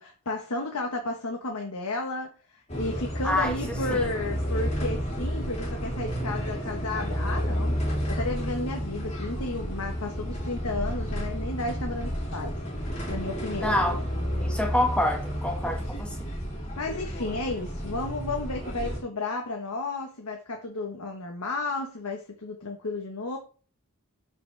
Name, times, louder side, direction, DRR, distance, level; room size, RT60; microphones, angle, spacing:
voice 1, 0.0-2.3 2.7-7.8 8.1-12.6 13.1-14.0 16.8-23.4, left 2 dB, 85° left, 1.2 m, -33 dB
sound 1, 2.7-19.0, equal, 30° left, 2.9 m, -31 dB
voice 2, 3.2-3.6 3.9-4.1 13.6-14.0 14.4-16.2, left 1 dB, 5° left, 1.6 m, -26 dB
11.5 x 5.1 x 3.4 m
head